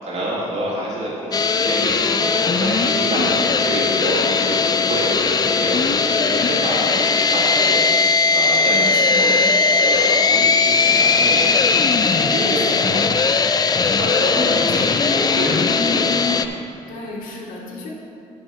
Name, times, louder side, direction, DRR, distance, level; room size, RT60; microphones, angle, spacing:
voice 1, 0.0-3.2 3.6-4.6 4.9-8.8 9.1-11.9 12.2-13.1 14.0-16.3, right 1 dB, 55° right, -6 dB, 2.3 m, -27 dB
sound 1, 1.3-16.5, left 4 dB, 30° left, 0.4 m, -18 dB
voice 2, 8.7-9.5 12.4-13.0 14.3-14.8 16.9-17.9, left 1 dB, 85° left, -5 dB, 1.7 m, -32 dB
9.6 x 4.5 x 6.9 m, 2.6 s
cardioid pair, 95°, 14 cm